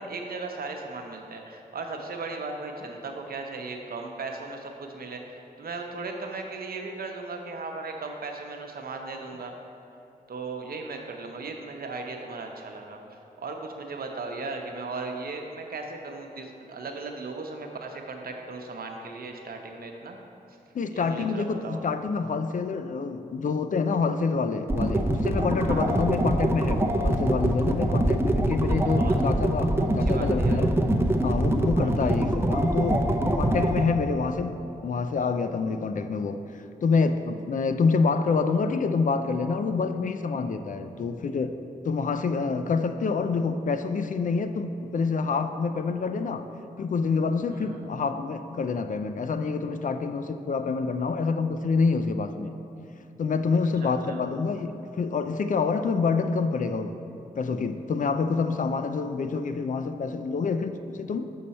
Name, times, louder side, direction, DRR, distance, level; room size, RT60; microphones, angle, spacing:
voice 1, 0.0-9.5 10.3-13.0 13.4-20.2 20.9-21.8 25.7-26.0 28.6-29.1 29.4-30.6 31.8-32.2 47.5-47.8 53.8-54.3, right 3 dB, 65° right, 3 dB, 0.8 m, -37 dB
voice 2, 20.7-30.7 31.2-33.1 33.3-41.5 41.8-46.5 46.8-52.5 53.2-57.0 57.4-61.3, left 4 dB, 55° left, 9 dB, 0.4 m, -27 dB
sound 1, 24.7-33.9, right 1 dB, 15° right, 0.6 m, -24 dB
6.5 x 5.5 x 4.2 m, 2.8 s
cardioid pair, 45°, 16 cm